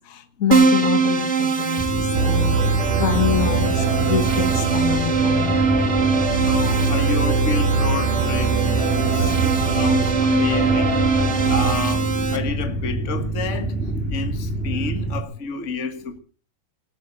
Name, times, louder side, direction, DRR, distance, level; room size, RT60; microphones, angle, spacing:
voice 1, 0.4-1.8 2.2-2.6 3.0-3.7 4.0-4.5 4.7-5.5, left 9 dB, 85° left, 0.7 m, -25 dB
Keyboard (musical), 0.5-12.4, right 4 dB, 80° right, 0.6 m, -22 dB
sound 1, 1.8-15.2, right 2 dB, 5° left, 4.3 m, -27 dB
sound 2, 2.1-11.7, right 5 dB, 65° right, 3.1 m, -24 dB
voice 2, 6.5-11.0 11.5-13.7 14.1-16.2, left 5 dB, 50° left, 0.8 m, -30 dB
20.0 x 8.8 x 6.6 m
omnidirectional pair, 4.4 m